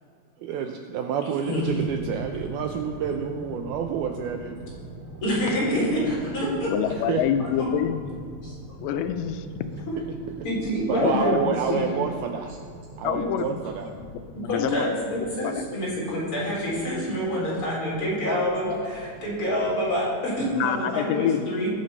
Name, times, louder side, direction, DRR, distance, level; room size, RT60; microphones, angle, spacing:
voice 1, 0.4-4.8 6.9-7.2 10.9-12.6 13.0-13.9 18.3-18.5, right 7 dB, 80° right, 4 dB, 2.3 m, -29 dB
sound 1, 1.6-19.9, right 1 dB, 25° right, 1.5 m, -42 dB
voice 2, 5.2-6.0 6.3-6.9 7.4-7.7 8.4-8.5 10.4-11.3 11.7-11.8 14.5-21.7, equal, 30° left, -6 dB, 5.2 m, -27 dB
voice 3, 6.7-8.1 8.8-9.4 9.7-9.8 11.0-11.4 11.7-11.8 13.0-13.6 14.4-15.0 15.4-15.6 20.5-21.5, left 10 dB, 90° left, 9 dB, 2.9 m, -26 dB
19.5 x 7.8 x 5.4 m, 2.2 s
omnidirectional pair, 5.0 m